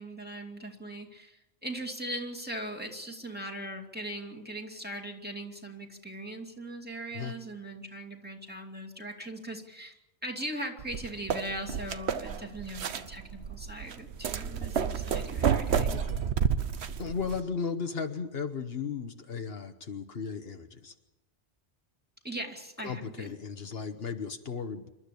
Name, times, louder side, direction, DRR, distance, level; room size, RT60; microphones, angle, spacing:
voice 1, 0.0-9.9 10.2-16.0 22.2-23.3, right 1 dB, 10° right, 1 dB, 2.4 m, -40 dB
sound 1, 10.8-17.4, right 7 dB, 85° right, 1.2 m, -30 dB
voice 2, 15.9-16.3 16.8-20.9 22.8-24.9, left 5 dB, 65° left, 7 dB, 1.4 m, -36 dB
27.5 x 12.5 x 8.4 m, 1.0 s
omnidirectional pair, 1.1 m